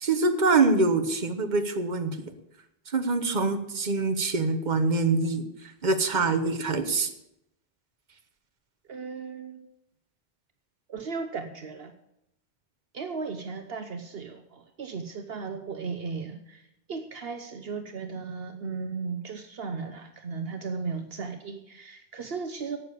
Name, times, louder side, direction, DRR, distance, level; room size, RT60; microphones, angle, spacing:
voice 1, 0.0-2.2 2.9-5.4 5.8-7.1, right 3 dB, 45° right, 7 dB, 1.2 m, -24 dB
voice 2, 8.9-9.7 10.9-11.9 12.9-16.6 16.9-22.8, right 5 dB, 65° right, 7 dB, 1.1 m, -36 dB
12.0 x 8.4 x 8.4 m, 0.81 s
omnidirectional pair, 1.1 m